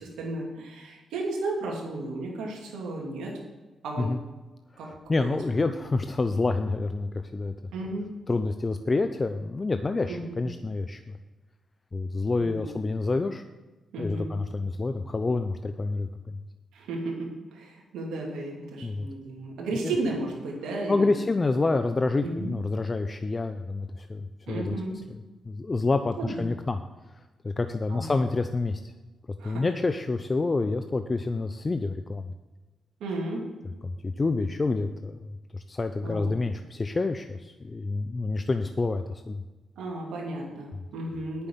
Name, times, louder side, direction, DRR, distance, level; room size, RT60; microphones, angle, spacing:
voice 1, 0.0-3.3 3.8-4.1 4.8-4.9 5.2-5.4 5.7-5.8 7.7-8.1 10.1-10.3 12.4-12.7 13.9-14.3 16.7-21.3 22.2-22.5 24.5-25.0 26.2-26.4 27.9-28.2 29.4-29.7 33.0-33.4 36.0-36.3 39.8-41.5, right 2 dB, 80° right, -2 dB, 2.7 m, -34 dB
voice 2, 4.8-7.5 8.3-11.2 11.9-13.4 14.0-16.4 18.8-19.1 19.8-19.9 20.9-24.8 25.4-26.8 27.4-28.8 29.4-32.3 33.8-39.4, left 3 dB, 35° left, 8 dB, 0.7 m, -28 dB
9.2 x 7.0 x 7.1 m, 1.2 s
supercardioid pair, 50°, 0 cm